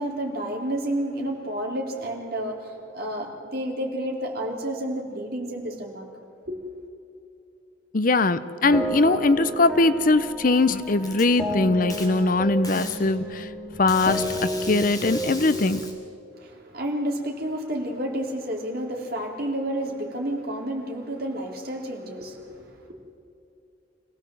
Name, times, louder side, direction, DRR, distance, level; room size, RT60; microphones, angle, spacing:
voice 1, 0.0-6.1 6.5-6.6 16.4-22.9, right 1 dB, 50° right, 0 dB, 3.5 m, -30 dB
voice 2, 7.9-13.5 13.8-15.8, left 3 dB, 45° left, 14 dB, 0.6 m, -21 dB
sound 1, 8.6-15.8, right 1 dB, ahead, 2.2 m, -32 dB
Packing tape duct tape, 10.2-11.2 11.9-12.1 12.6-13.0 13.9-15.9, left 2 dB, 20° left, 3.3 m, -37 dB
26.0 x 17.5 x 7.7 m, 2.6 s
head